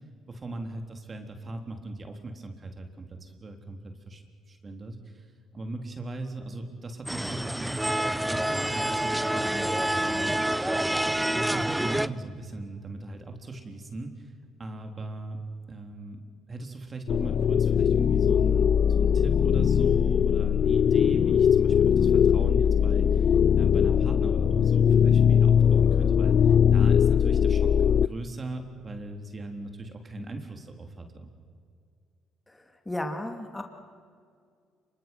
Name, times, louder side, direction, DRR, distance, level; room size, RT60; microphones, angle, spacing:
voice 1, 0.3-5.3 5.5-10.5 11.3-14.3 14.6-15.4 15.7-16.2 16.5-27.7 28.0-31.3, right 2 dB, 35° right, 5 dB, 3.5 m, -39 dB
sound 1, 7.1-12.1, right 1 dB, 5° right, 0.9 m, -27 dB
sound 2, 17.1-28.1, left 8 dB, 55° left, 0.5 m, -21 dB
voice 2, 32.5-33.6, left 1 dB, 15° left, 4 dB, 2.9 m, -34 dB
27.5 x 24.5 x 6.1 m, 2.2 s
hypercardioid pair, 55°, 0 cm